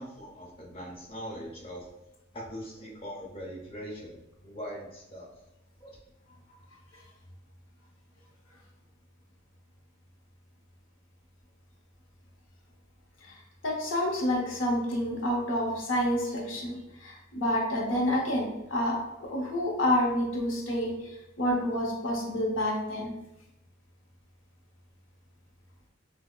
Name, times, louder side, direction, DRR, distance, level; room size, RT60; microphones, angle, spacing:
voice 1, 0.0-1.9 2.3-4.2 4.4-5.3 5.8-6.0, equal, 30° left, -3 dB, 0.7 m, -41 dB
voice 2, 13.6-20.9 21.4-23.1, left 1 dB, 90° left, 0 dB, 0.7 m, -28 dB
5.7 x 2.0 x 2.3 m, 0.90 s
head